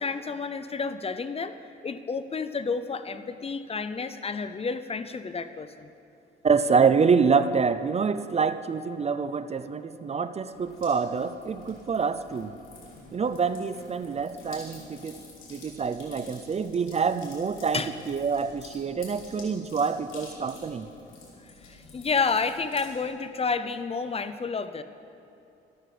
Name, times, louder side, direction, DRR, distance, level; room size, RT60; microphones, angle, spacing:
voice 1, 0.0-1.5 1.8-5.9 13.0-13.1 17.7-17.9 21.5-24.8, left 4 dB, 30° left, 11 dB, 0.6 m, -30 dB
voice 2, 6.4-12.5 13.1-15.2 15.5-20.9, right 5 dB, 35° right, 12 dB, 0.5 m, -26 dB
sound 1, 10.5-22.9, left 3 dB, 80° left, 3.5 m, -49 dB
13.0 x 12.5 x 5.0 m, 2.6 s
cardioid pair, 90°, 20 cm